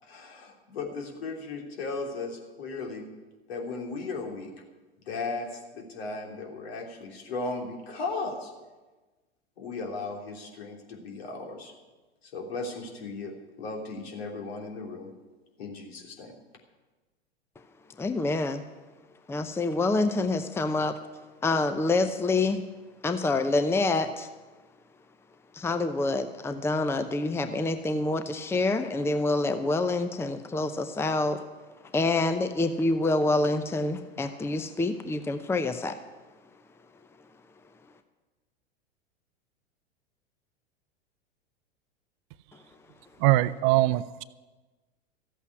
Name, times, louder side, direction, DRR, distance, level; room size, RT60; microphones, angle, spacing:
voice 1, 0.0-3.0 3.5-4.5 5.0-8.5 9.6-11.7 12.2-15.1 15.6-16.3, left 3 dB, 70° left, 1 dB, 3.3 m, -36 dB
voice 2, 18.0-18.6 19.3-21.0 21.4-22.6 23.0-24.3 25.5-31.4 31.9-36.0, left 2 dB, 10° left, 9 dB, 0.7 m, -27 dB
voice 3, 43.2-44.2, right 17 dB, 45° right, 16 dB, 0.6 m, -22 dB
14.0 x 8.4 x 9.6 m, 1.2 s
hypercardioid pair, 90°, 32 cm